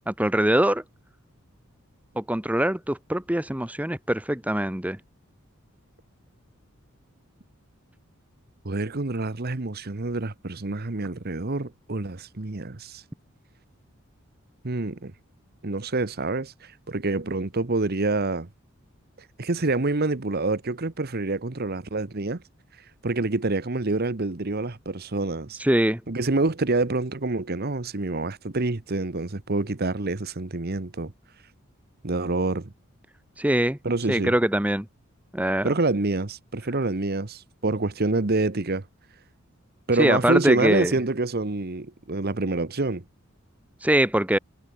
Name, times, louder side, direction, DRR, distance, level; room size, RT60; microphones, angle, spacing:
voice 1, 0.1-0.8 2.2-5.0 25.6-26.0 33.4-33.8 34.1-34.9 35.3-35.7 40.0-40.9 43.8-44.4, right 1 dB, 5° right, 1.1 m, -23 dB
voice 2, 8.6-13.0 14.6-15.1 15.6-16.5 16.9-18.5 19.4-22.4 23.0-25.6 26.1-31.1 32.0-32.7 33.8-34.3 35.6-38.8 39.9-43.0, right 2 dB, 50° right, 1.1 m, -27 dB
head